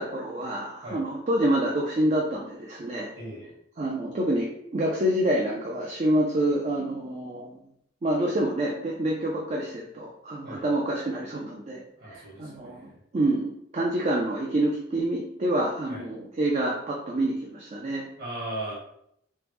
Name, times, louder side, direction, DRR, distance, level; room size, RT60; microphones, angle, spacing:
voice 1, 0.0-3.1 3.8-7.6 8.0-11.8 12.1-18.1, right 1 dB, 35° right, -2 dB, 0.4 m, -27 dB
voice 2, 3.1-3.5 10.4-10.6 12.0-13.0 15.9-16.0 18.2-18.8, right 1 dB, 50° right, -5 dB, 1.3 m, -37 dB
3.3 x 2.0 x 3.0 m, 0.73 s
head